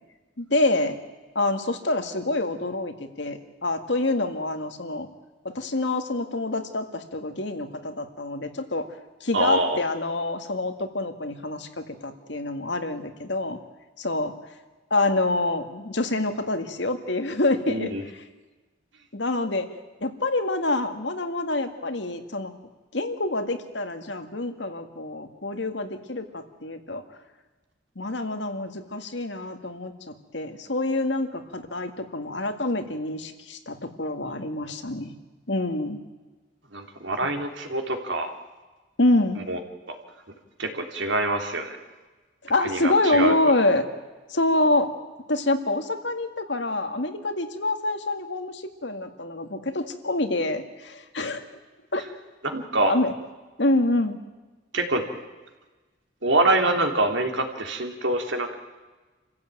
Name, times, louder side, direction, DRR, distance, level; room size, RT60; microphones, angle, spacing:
voice 1, 0.4-1.0 1.4-5.1 5.4-8.9 9.2-13.6 14.0-14.3 14.9-18.2 19.1-19.7 20.0-22.5 22.9-27.0 28.0-35.1 35.5-36.0 39.0-39.4 42.4-43.8 44.3-44.9 45.3-51.4 51.9-52.0 52.8-53.1 53.6-54.2, left 2 dB, 70° left, 7 dB, 2.0 m, -26 dB
voice 2, 9.3-9.8 17.7-18.0 36.7-38.3 39.3-39.6 40.6-41.8 42.6-43.3 52.4-52.9 54.7-55.0 56.2-58.5, right 2 dB, 85° right, 4 dB, 3.3 m, -25 dB
28.0 x 15.5 x 9.1 m, 1.2 s
head